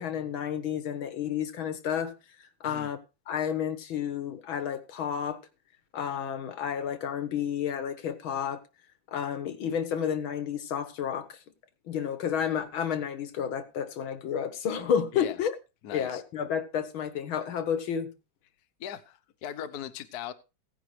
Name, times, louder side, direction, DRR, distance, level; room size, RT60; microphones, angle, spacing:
voice 1, 0.0-2.1 2.4-3.0 3.3-5.4 5.9-8.6 9.1-11.4 11.9-15.5 15.9-18.1, left 8 dB, 90° left, 2.1 m, -31 dB
voice 2, 15.8-16.2 18.8-20.3, left 9 dB, 60° left, 1.3 m, -39 dB
16.5 x 10.0 x 3.2 m
omnidirectional pair, 2.1 m